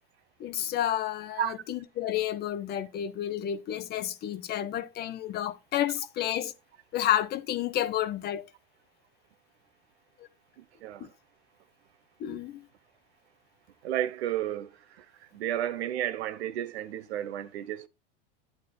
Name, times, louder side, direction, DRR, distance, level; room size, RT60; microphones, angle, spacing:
voice 1, 0.4-6.5 6.9-8.5 12.2-12.6, left 11 dB, 30° left, 0.7 m, -30 dB
voice 2, 13.8-15.0 15.3-17.9, right 11 dB, 80° right, 1.0 m, -32 dB
9.8 x 9.4 x 2.2 m
supercardioid pair, 125°, 32 cm